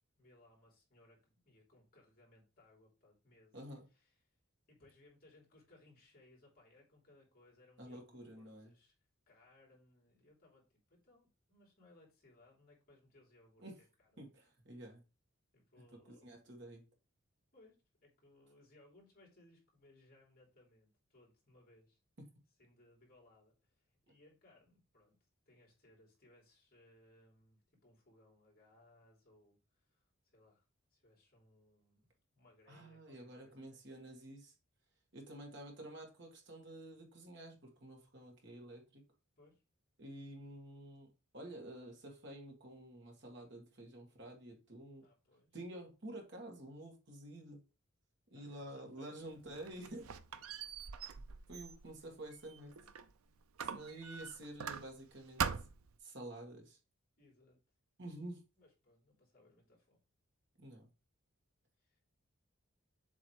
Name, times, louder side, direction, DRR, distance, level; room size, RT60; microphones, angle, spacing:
voice 1, 0.2-4.4 4.7-8.9 9.3-14.3 15.5-16.4 17.5-17.8 18.0-22.0 22.6-30.6 30.9-33.9 39.4-39.6 45.0-45.6 48.3-49.1 51.3-51.5 51.9-52.1 57.2-57.6 58.6-60.0 61.8-62.0, left 2 dB, 45° left, 3.4 m, -66 dB
voice 2, 3.5-3.9 7.8-8.7 13.6-13.7 14.2-15.0 15.9-16.8 32.7-34.5 35.1-39.0 40.0-41.1 41.3-45.0 45.5-47.6 48.3-50.2 51.5-52.7 53.6-55.4 56.0-56.8 58.0-58.4 60.6-60.9, right 1 dB, 55° right, 1.9 m, -50 dB
Squeak, 49.3-53.1 53.6-55.1 55.4-56.0, right 6 dB, 85° right, 0.6 m, -42 dB
7.5 x 3.2 x 4.6 m
head